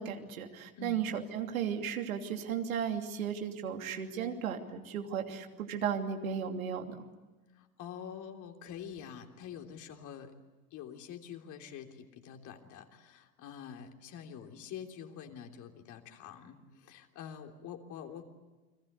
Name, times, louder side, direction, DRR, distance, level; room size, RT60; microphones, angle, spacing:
voice 1, 0.0-7.0, right 8 dB, 75° right, 4 dB, 3.0 m, -35 dB
voice 2, 7.5-10.3 10.7-18.2, left 8 dB, 45° left, 4 dB, 3.4 m, -46 dB
30.0 x 21.5 x 8.2 m, 1.2 s
hypercardioid pair, 95°, 41 cm